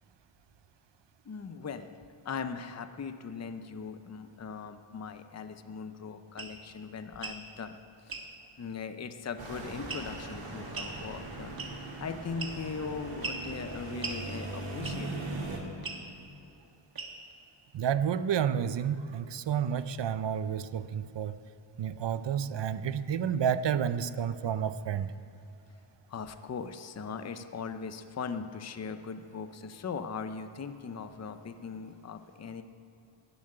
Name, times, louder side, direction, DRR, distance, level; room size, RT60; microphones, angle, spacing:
voice 1, 1.2-7.8 8.1-8.2 8.6-11.5 12.0-15.3 26.1-32.6, left 5 dB, 35° left, 9 dB, 0.6 m, -39 dB
sound 1, 6.4-6.6 7.1-7.4 8.1-8.3 9.9-10.2 10.7-11.0 11.6-11.9 12.4-12.8 13.2-13.5 14.0-14.2 14.8-15.1 15.8-16.0 17.0-17.3, right 4 dB, 45° right, 1.4 m, -38 dB
sound 2, 9.4-15.6, right 2 dB, 75° right, 2.7 m, -40 dB
voice 2, 17.7-21.4 21.8-25.1, right 8 dB, 60° right, 14 dB, 0.6 m, -30 dB
13.0 x 7.1 x 9.8 m, 3.0 s
wide cardioid pair, 165°, 49 cm